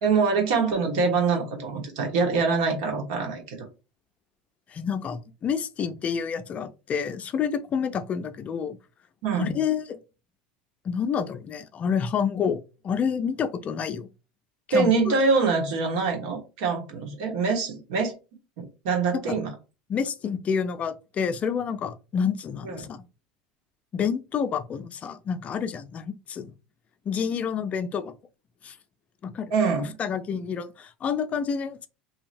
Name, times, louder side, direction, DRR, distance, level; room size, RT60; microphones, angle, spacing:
voice 1, 0.0-3.7 9.2-9.6 14.7-18.1 18.6-19.5 22.6-22.8 29.5-30.0, right 4 dB, 75° right, 1.2 m, -24 dB
voice 2, 4.7-8.8 9.3-10.0 10.8-14.1 14.7-15.1 19.1-19.4 19.9-23.1 23.9-26.5 27.1-28.1 28.6-28.8 29.2-29.5 30.0-31.9, left 7 dB, 35° left, 0.4 m, -28 dB
2.8 x 2.7 x 2.6 m
hypercardioid pair, 95°, 4 cm